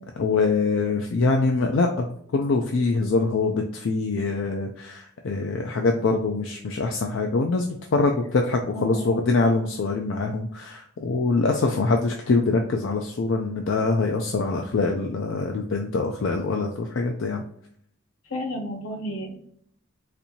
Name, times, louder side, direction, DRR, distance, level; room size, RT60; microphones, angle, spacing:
voice 1, 0.2-2.1 2.3-17.4, left 3 dB, 65° left, 3 dB, 0.4 m, -24 dB
voice 2, 8.7-9.2 18.3-19.4, equal, 80° left, 2 dB, 0.9 m, -32 dB
4.2 x 2.6 x 2.8 m, 0.67 s
head